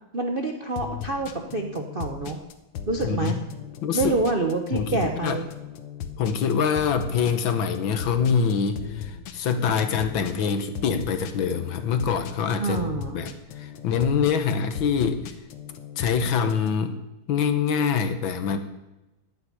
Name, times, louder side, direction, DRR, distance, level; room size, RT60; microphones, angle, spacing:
voice 1, 0.1-2.4 2.9-3.4 3.9-5.4 12.6-13.3, right 3 dB, 45° right, 3 dB, 0.7 m, -27 dB
sound 1, 0.8-16.7, left 8 dB, 90° left, 1.9 m, -37 dB
voice 2, 3.0-3.4 3.8-4.1 4.7-5.4 6.2-12.8 13.1-13.3 13.6-15.2 16.0-17.0 17.3-18.6, left 6 dB, 65° left, 8 dB, 1.7 m, -25 dB
9.3 x 8.9 x 9.8 m, 0.98 s
omnidirectional pair, 2.4 m